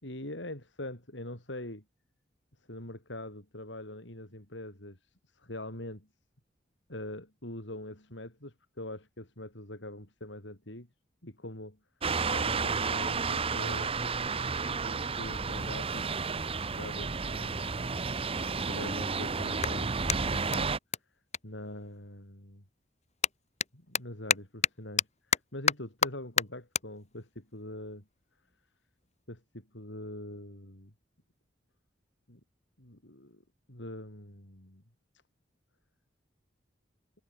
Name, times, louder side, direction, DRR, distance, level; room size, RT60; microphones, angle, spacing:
voice 1, 0.0-1.8 2.7-5.0 5.4-6.1 6.9-10.9 11.2-11.8 12.3-13.9 14.7-16.1 16.7-17.8 18.7-19.9 20.3-20.7 21.4-22.6 23.7-25.1 25.5-28.0 29.3-30.9 32.3-32.4 32.8-33.4 33.7-34.8, left 1 dB, 70° left, 5.5 m, -43 dB
sound 1, 12.0-20.8, right 4 dB, 30° right, 0.8 m, -32 dB
Clapping, 19.6-22.3 22.6-29.2, left 7 dB, 40° left, 4.0 m, -34 dB
head